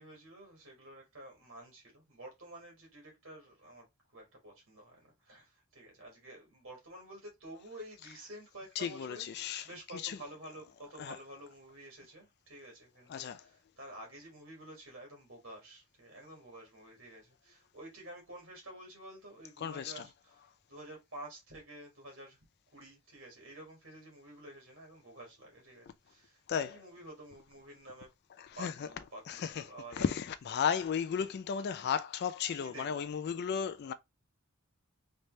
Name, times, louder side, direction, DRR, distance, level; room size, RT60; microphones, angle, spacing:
voice 1, 0.0-3.9 4.1-22.4 22.7-28.1 28.5-30.1 31.8-32.0 32.6-33.1, right 1 dB, 60° right, 1.7 m, -50 dB
voice 2, 8.8-9.7 9.9-10.2 11.0-11.2 13.1-13.4 19.6-20.0 26.5-26.8 28.4-28.9 29.3-29.7 29.9-33.9, left 7 dB, 45° left, 0.3 m, -34 dB
3.3 x 2.7 x 3.1 m
head